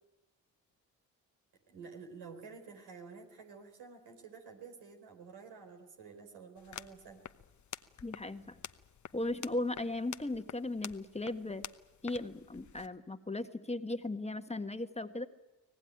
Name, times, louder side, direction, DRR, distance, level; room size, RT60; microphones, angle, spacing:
voice 1, 1.7-7.2, right 5 dB, 75° right, 4 dB, 4.3 m, -50 dB
sound 1, 6.6-12.9, left 9 dB, 50° left, 1.1 m, -49 dB
voice 2, 8.0-8.6 9.1-11.7 12.0-15.3, left 2 dB, 15° left, 8 dB, 1.6 m, -37 dB
24.5 x 18.0 x 9.2 m, 1.1 s
hypercardioid pair, 50°, 39 cm